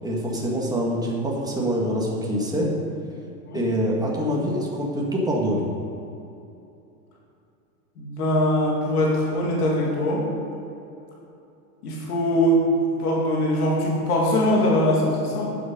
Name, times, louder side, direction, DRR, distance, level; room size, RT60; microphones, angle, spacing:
voice 1, 0.0-2.7 3.5-5.7, equal, 10° right, -3 dB, 2.1 m, -25 dB
voice 2, 8.0-10.3 11.8-15.6, left 1 dB, 85° left, -3 dB, 2.5 m, -22 dB
9.3 x 7.7 x 5.4 m, 2.8 s
hypercardioid pair, 110°, 45 cm